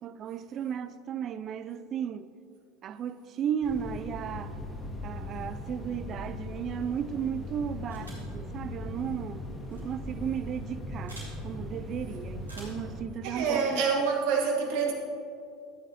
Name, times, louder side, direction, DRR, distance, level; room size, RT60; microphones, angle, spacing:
voice 1, 0.0-2.3 2.8-4.6 5.0-9.4 9.7-13.8, right 8 dB, 40° right, 0.4 m, -35 dB
sound 1, 3.6-13.0, left 1 dB, 15° left, 1.8 m, -39 dB
sound 2, 7.9-8.3 9.6-9.8 11.1-11.3 12.4-12.9, right 1 dB, 85° right, 2.4 m, -47 dB
voice 2, 13.2-14.9, right 5 dB, 60° right, 1.6 m, -27 dB
13.5 x 8.7 x 3.1 m
figure-of-eight pair, 70°, 0 cm